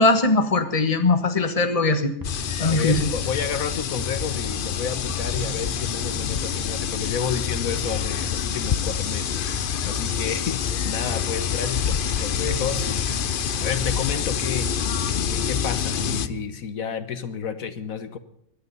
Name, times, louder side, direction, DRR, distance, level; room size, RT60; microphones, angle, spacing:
voice 1, 0.0-2.1 2.6-3.1, left 2 dB, 25° left, 8 dB, 1.4 m, -20 dB
sound 1, 2.2-16.3, left 8 dB, 50° left, 0.7 m, -27 dB
sound 2, 2.2-16.4, left 3 dB, 15° right, 1.9 m, -36 dB
voice 2, 2.6-13.1 13.6-14.7 15.1-18.2, left 7 dB, 80° left, 11 dB, 1.5 m, -31 dB
23.0 x 9.5 x 5.5 m, 0.73 s
omnidirectional pair, 1.4 m